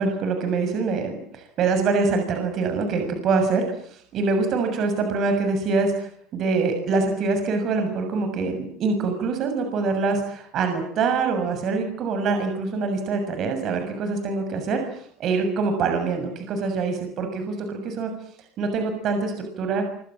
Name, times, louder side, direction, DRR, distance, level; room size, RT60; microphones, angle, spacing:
voice 1, 0.0-18.1 18.6-19.8, right 4 dB, 50° right, 6 dB, 6.8 m, -25 dB
26.5 x 26.0 x 7.6 m, 0.63 s
supercardioid pair, 100°, 0 cm